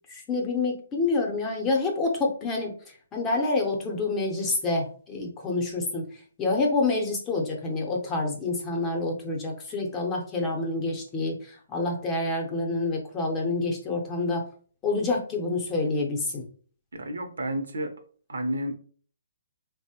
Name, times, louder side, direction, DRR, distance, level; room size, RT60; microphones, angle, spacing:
voice 1, 0.1-14.4 14.8-16.5, left 3 dB, 15° left, 1 dB, 0.6 m, -28 dB
voice 2, 16.9-17.9 18.3-18.8, right 1 dB, 80° right, 6 dB, 0.6 m, -31 dB
3.1 x 2.0 x 2.8 m, 0.43 s
hypercardioid pair, 150°, 0 cm